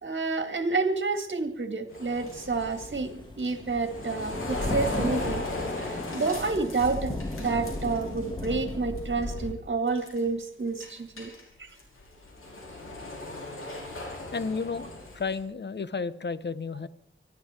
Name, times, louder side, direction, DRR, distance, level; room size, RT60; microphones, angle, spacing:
voice 1, 0.0-5.4 5.8-11.3 11.6-11.8, right 3 dB, 60° right, 8 dB, 2.0 m, -29 dB
sound 1, 1.9-8.7 9.0-9.4 9.9-10.4 10.8-15.4, left 2 dB, 85° left, 4.9 m, -38 dB
sound 2, 2.2-9.5, left 1 dB, 20° left, 2.3 m, -36 dB
voice 2, 14.3-16.9, left 4 dB, 55° left, 15 dB, 0.9 m, -32 dB
25.0 x 12.5 x 4.4 m, 0.66 s
wide cardioid pair, 60°, 21 cm